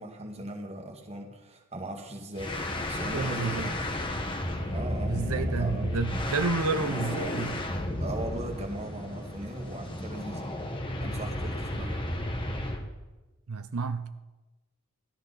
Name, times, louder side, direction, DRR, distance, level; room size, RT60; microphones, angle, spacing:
voice 1, 0.0-2.6 2.9-3.9 4.7-6.3 8.0-10.5 11.0-12.2, right 1 dB, 30° right, 1 dB, 1.9 m, -39 dB
sound 1, 2.4-12.9, left 1 dB, 20° left, 1.3 m, -33 dB
voice 2, 3.1-3.7 5.1-7.6 13.5-14.1, right 4 dB, 80° right, 9 dB, 0.6 m, -30 dB
17.5 x 13.0 x 4.1 m, 1.1 s
head